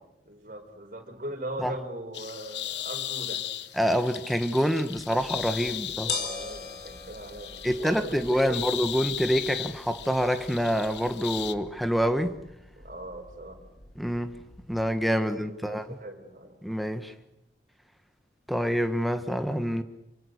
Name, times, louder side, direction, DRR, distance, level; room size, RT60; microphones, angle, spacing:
voice 1, 0.2-3.5 5.7-8.7 12.8-13.6 15.2-16.6, right 1 dB, 50° right, 5.0 m, -40 dB
sound 1, 2.1-11.5, left 12 dB, 90° left, 1.2 m, -37 dB
voice 2, 3.8-6.1 7.6-12.4 14.0-14.4 14.7-16.0 16.6-17.1 18.5-19.8, equal, ahead, 1.4 m, -26 dB
sound 2, 5.0-15.0, left 4 dB, 70° left, 4.3 m, -42 dB
27.5 x 25.5 x 6.6 m
head